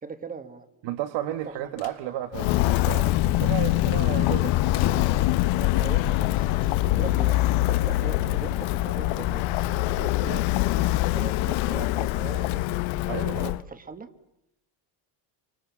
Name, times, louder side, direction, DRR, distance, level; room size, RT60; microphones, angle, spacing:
voice 1, 0.0-0.7 1.5-1.6 5.4-7.4 7.7-12.6 13.4-14.1, right 4 dB, 15° right, 11 dB, 1.4 m, -40 dB
voice 2, 0.8-4.9 13.1-13.5, right 12 dB, 60° right, 10 dB, 1.3 m, -33 dB
sound 1, 1.4-2.1 2.4-2.5 2.7-2.8 3.3-6.3, left 7 dB, 30° left, 1.7 m, -38 dB
Walk footsteps, 2.3-13.6, left 17 dB, 70° left, 0.9 m, -24 dB
29.0 x 24.5 x 7.2 m, 0.87 s
cardioid pair, 165°, 49 cm